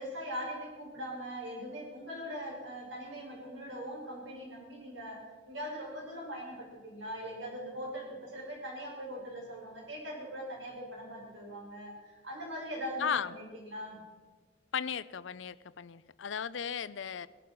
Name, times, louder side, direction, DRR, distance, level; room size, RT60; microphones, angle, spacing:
voice 1, 0.0-5.2 5.5-14.0, equal, 85° right, -2 dB, 5.8 m, -41 dB
voice 2, 13.0-13.3 14.7-17.3, left 7 dB, 90° left, 18 dB, 0.6 m, -35 dB
18.0 x 12.0 x 6.1 m, 1.4 s
head